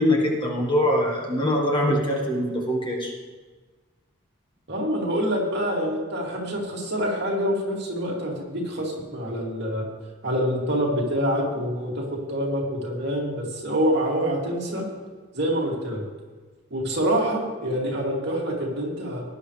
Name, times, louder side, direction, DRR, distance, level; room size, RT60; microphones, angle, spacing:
voice 1, 0.0-3.1, left 1 dB, 20° left, -1 dB, 1.6 m, -23 dB
voice 2, 4.7-9.8 10.2-14.8 15.3-16.0 16.7-19.2, equal, 50° right, -3 dB, 2.7 m, -26 dB
18.5 x 10.5 x 3.3 m, 1.3 s
head